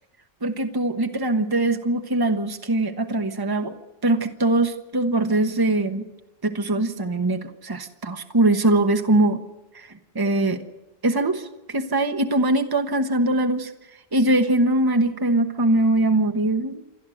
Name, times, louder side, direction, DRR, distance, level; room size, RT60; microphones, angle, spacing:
voice 1, 0.4-3.8 4.0-6.0 6.4-9.4 9.7-9.9 10.1-10.6 11.0-13.7 14.1-16.8, right 2 dB, 25° right, 6 dB, 1.1 m, -22 dB
28.5 x 11.5 x 7.8 m, 1.1 s
omnidirectional pair, 1.0 m